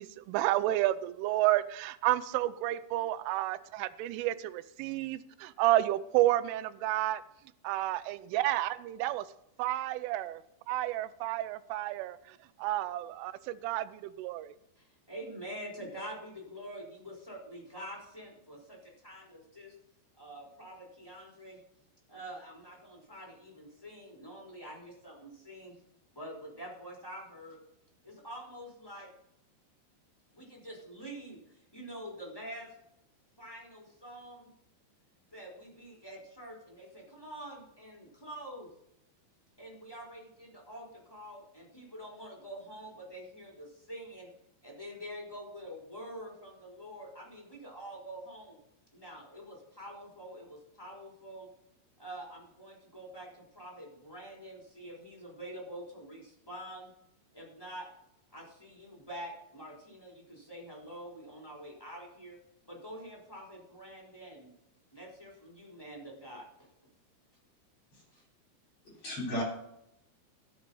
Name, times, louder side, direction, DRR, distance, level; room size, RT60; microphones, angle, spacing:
voice 1, 0.0-7.2 7.6-9.2 9.6-10.4 10.7-12.2 12.6-14.5, right 15 dB, 90° right, 3.1 m, -30 dB
voice 2, 14.7-19.7 20.2-21.6 22.1-25.7 26.1-27.6 28.0-29.1 30.3-32.7 33.4-34.5 35.3-38.7 39.6-44.3 44.6-48.6 48.9-51.5 52.0-56.9 57.3-57.9 58.3-62.4 62.7-64.5 64.9-66.7 68.1-68.2, right 1 dB, 5° left, 2.9 m, -46 dB
voice 3, 68.8-69.4, equal, 35° left, 4.1 m, -35 dB
13.0 x 7.4 x 5.5 m
omnidirectional pair, 5.5 m